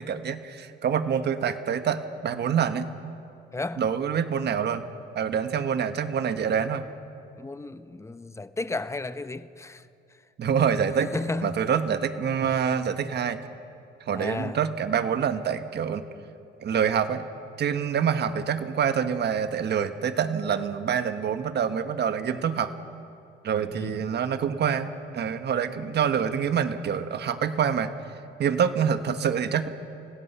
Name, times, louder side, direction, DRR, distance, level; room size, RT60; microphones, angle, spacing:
voice 1, 0.0-2.9 3.8-4.8 5.1-6.8 10.4-11.1 11.4-13.4 14.1-16.0 16.6-17.2 17.6-22.7 23.4-27.9 28.4-29.7, right 7 dB, 60° right, 1.3 m, -26 dB
voice 2, 3.5-3.8 7.4-9.9 11.0-11.7 14.1-14.6 23.7-23.9, left 3 dB, 15° left, 0.7 m, -33 dB
29.0 x 17.0 x 5.6 m
cardioid pair, 90°, 20 cm